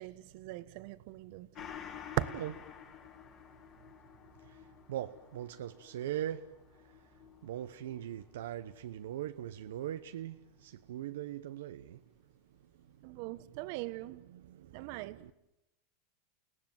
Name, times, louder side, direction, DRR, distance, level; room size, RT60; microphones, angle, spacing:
voice 1, 0.0-1.7 2.2-2.3 13.0-14.2 14.7-15.3, right 17 dB, 60° right, 1.3 m, -39 dB
Gong, 1.5-10.5 10.9-11.0, left 8 dB, 45° left, 6.0 m, -52 dB
voice 2, 4.9-6.5 7.4-12.0 14.3-14.6 15.2-15.3, right 11 dB, 90° right, 0.9 m, -40 dB
30.0 x 18.5 x 9.4 m
supercardioid pair, 130°, 0 cm